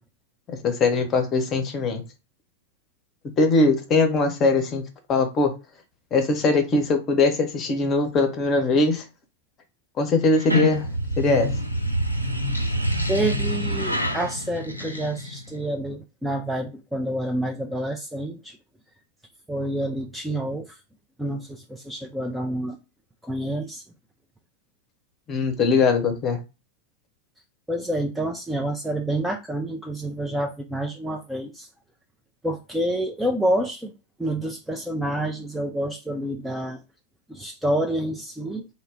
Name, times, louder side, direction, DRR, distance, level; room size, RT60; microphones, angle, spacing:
voice 1, 0.5-2.0 3.4-4.8 5.1-5.5 6.1-9.0 10.0-10.9 11.2-11.5 25.3-26.4, left 3 dB, 30° left, 0.7 m, -21 dB
sound 1, 10.3-15.6, equal, 90° left, 0.4 m, -26 dB
voice 2, 13.1-18.6 19.5-20.8 21.2-22.8 23.2-23.8 27.7-31.7 32.4-33.9 34.2-36.8 37.3-38.7, right 1 dB, 5° right, 0.4 m, -28 dB
2.1 x 2.1 x 3.4 m
figure-of-eight pair, 90°, 0 cm